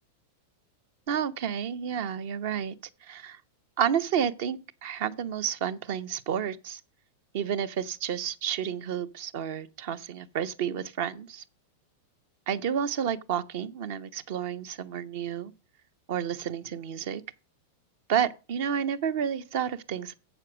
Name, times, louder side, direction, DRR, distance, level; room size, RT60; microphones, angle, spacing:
voice 1, 1.1-2.8 3.0-3.4 3.8-6.8 7.3-11.4 12.5-15.5 16.1-17.2 18.1-20.1, right 8 dB, 60° right, 0.9 m, -30 dB
7.9 x 6.4 x 6.2 m
hypercardioid pair, 120°, 0 cm